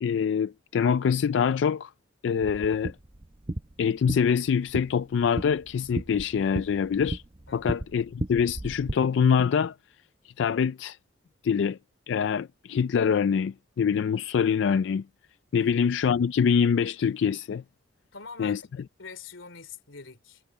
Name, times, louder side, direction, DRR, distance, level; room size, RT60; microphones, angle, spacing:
voice 1, 0.0-1.9 2.2-3.0 3.8-7.2 7.5-9.7 10.2-11.0 11.4-11.8 12.1-15.0 15.5-17.6 18.4-18.6, left 7 dB, 65° left, 0.3 m, -25 dB
sound 1, 2.4-8.9, right 1 dB, 30° right, 0.8 m, -36 dB
voice 2, 18.1-20.4, left 4 dB, 90° left, 3.0 m, -44 dB
head